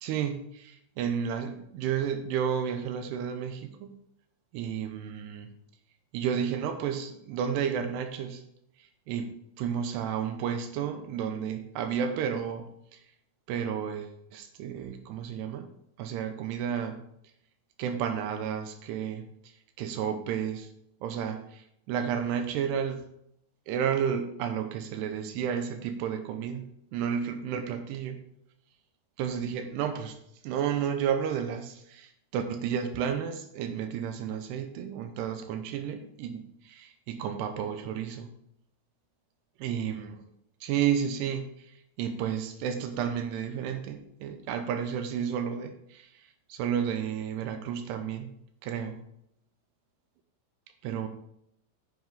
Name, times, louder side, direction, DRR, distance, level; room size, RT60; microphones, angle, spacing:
voice 1, 0.0-3.9 4.5-5.5 6.1-8.4 9.1-13.0 13.5-15.7 16.0-17.0 17.8-19.3 19.8-20.7 21.0-23.0 23.7-26.6 26.9-28.2 29.2-30.2 30.4-38.3 39.6-40.2 40.6-48.3 48.6-49.0 50.8-51.1, right 8 dB, 80° right, 8 dB, 2.7 m, -32 dB
9.2 x 7.3 x 3.6 m, 0.75 s
omnidirectional pair, 5.0 m